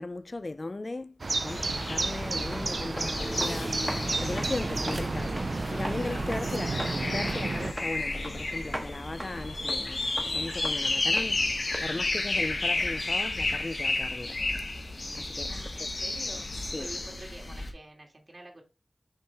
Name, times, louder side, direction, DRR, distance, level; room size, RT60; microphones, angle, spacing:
voice 1, 0.0-11.5 11.8-14.4 15.1-15.5 16.7-16.9, left 2 dB, 50° left, 0.4 m, -37 dB
sound 1, 1.2-7.7, right 3 dB, 75° right, 0.5 m, -32 dB
sound 2, 1.5-17.7, left 2 dB, 75° left, 1.7 m, -32 dB
sound 3, 1.9-17.2, equal, 5° right, 1.3 m, -41 dB
voice 2, 15.4-18.6, right 2 dB, 55° right, 2.6 m, -48 dB
6.5 x 4.6 x 4.7 m
wide cardioid pair, 65°, 0 cm